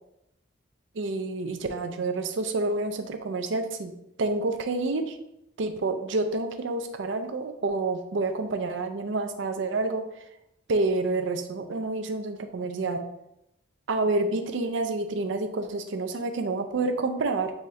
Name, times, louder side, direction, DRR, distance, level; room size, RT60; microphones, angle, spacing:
voice 1, 0.9-3.9 4.2-5.2 5.6-10.0 10.7-13.0 13.9-17.5, right 3 dB, 75° right, 8 dB, 0.5 m, -28 dB
4.2 x 3.6 x 3.2 m, 0.84 s
head